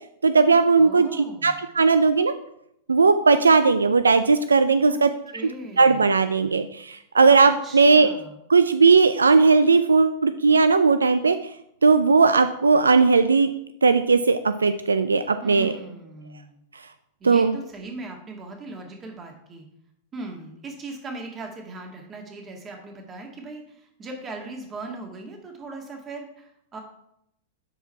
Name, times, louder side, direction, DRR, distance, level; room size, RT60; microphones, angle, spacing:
voice 1, 0.2-2.3 2.9-5.1 5.8-8.1 8.5-11.4 11.8-13.5 13.8-15.7 17.2-17.5, right 4 dB, 85° right, 11 dB, 0.4 m, -18 dB
voice 2, 0.8-1.5 4.9-5.0 5.3-6.1 7.3-8.4 15.4-16.6 17.2-19.7 20.1-26.8, right 2 dB, 25° right, 2 dB, 2.2 m, -39 dB
9.7 x 4.6 x 4.5 m, 0.77 s
hypercardioid pair, 100°, 0 cm